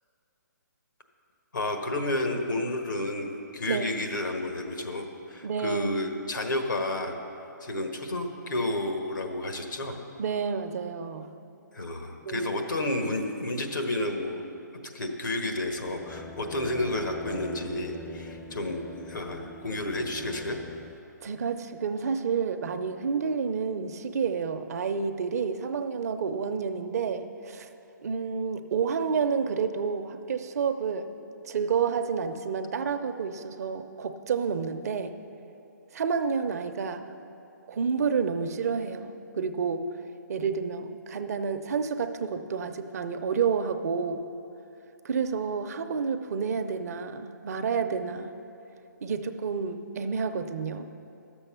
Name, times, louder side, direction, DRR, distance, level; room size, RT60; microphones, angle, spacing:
voice 1, 1.5-7.2 7.6-10.0 11.7-14.4 14.9-20.6, left 1 dB, 90° left, 4 dB, 1.4 m, -31 dB
voice 2, 5.4-5.9 10.2-11.3 12.2-12.5 21.2-27.7 28.0-31.1 31.4-35.1 35.9-37.1 37.7-39.9 40.3-44.2 45.0-48.3 49.0-50.9, right 6 dB, 55° right, 8 dB, 0.6 m, -29 dB
sound 1, 15.7-21.0, left 2 dB, 10° left, 0.4 m, -43 dB
12.0 x 7.0 x 5.7 m, 2.8 s
hypercardioid pair, 145°, 10 cm